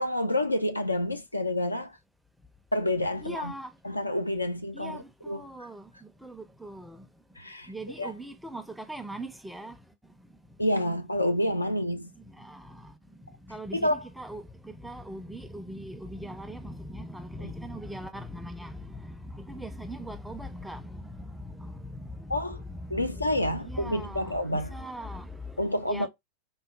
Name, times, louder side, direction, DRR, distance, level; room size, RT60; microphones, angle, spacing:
voice 1, 0.0-2.0 2.7-3.5 3.8-5.4 7.4-7.7 8.0-8.1 10.6-12.1 13.8-14.0 22.3-22.6 22.9-24.7 25.6-26.1, left 1 dB, 85° left, 0.4 m, -28 dB
voice 2, 3.2-3.8 4.7-7.2 7.7-10.4 11.9-26.1, equal, 5° right, 0.5 m, -41 dB
3.7 x 2.0 x 2.2 m
figure-of-eight pair, 90°, 0 cm